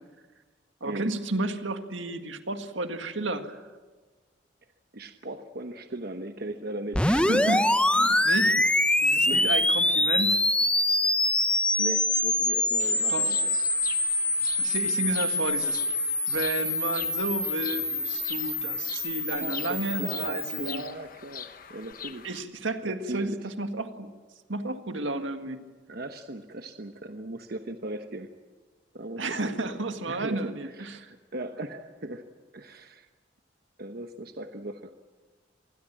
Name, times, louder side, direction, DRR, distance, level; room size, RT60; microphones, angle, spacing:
voice 1, 0.8-3.6 7.1-8.6 9.0-10.4 13.1-13.3 14.6-20.8 22.2-24.1 24.5-25.6 29.2-31.1, right 2 dB, 80° right, 7 dB, 1.9 m, -32 dB
voice 2, 4.9-7.0 8.6-8.7 9.1-9.5 11.8-13.6 19.3-22.3 22.8-23.5 25.9-28.3 28.9-29.5 30.1-32.3 32.5-33.1 33.8-34.9, right 1 dB, 55° right, 7 dB, 1.1 m, -38 dB
sound 1, 6.9-20.8, left 2 dB, 5° left, 0.8 m, -25 dB
Bird vocalization bird call bird song, 12.8-22.4, left 8 dB, 45° left, 1.2 m, -44 dB
26.5 x 20.5 x 7.6 m, 1.4 s
head